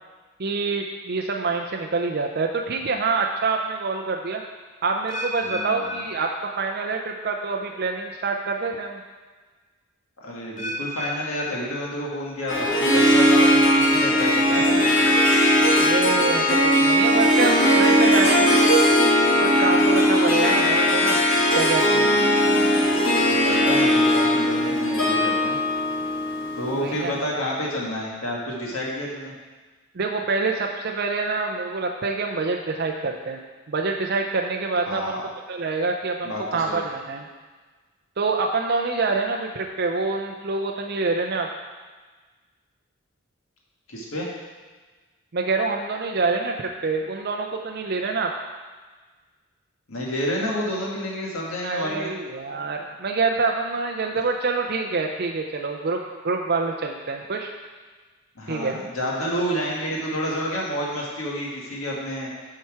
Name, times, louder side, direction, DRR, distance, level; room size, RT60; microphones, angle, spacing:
voice 1, 0.4-4.4 4.8-6.3 6.6-9.0 14.7-14.8 15.7-18.7 19.4-21.2 21.5-22.1 26.7-27.1 29.9-33.4 33.7-35.2 35.5-37.2 38.2-41.5 45.3-48.3 51.6-57.5 58.5-58.8, right 4 dB, 45° right, 2 dB, 0.5 m, -26 dB
sound 1, 5.1-7.1 7.4-7.8 8.5-8.6 10.6-12.5 12.8-13.3 13.9-14.0, left 1 dB, 35° left, 0.8 m, -35 dB
voice 2, 5.4-5.9 10.2-15.2 22.1-25.6 26.6-29.3 34.9-35.2 36.2-36.9 43.9-44.3 49.9-52.1 58.3-62.3, equal, 70° left, -3 dB, 1.6 m, -30 dB
Harp, 12.5-27.0, equal, 55° left, 1.3 m, -19 dB
7.3 x 5.7 x 4.7 m, 1.4 s
head